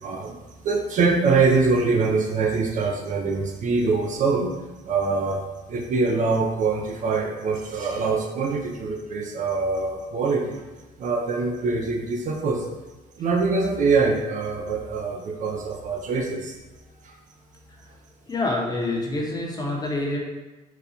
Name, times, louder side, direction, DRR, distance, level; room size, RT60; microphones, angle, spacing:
voice 1, 0.0-0.3 0.6-4.6 4.8-5.4 5.7-10.6 11.0-12.7 13.2-16.6 17.0-17.2, right 4 dB, 50° right, 1 dB, 0.4 m, -24 dB
voice 2, 18.3-20.2, left 2 dB, 25° left, -1 dB, 0.6 m, -26 dB
3.9 x 2.3 x 2.8 m, 1.1 s
cardioid pair, 110°, 17 cm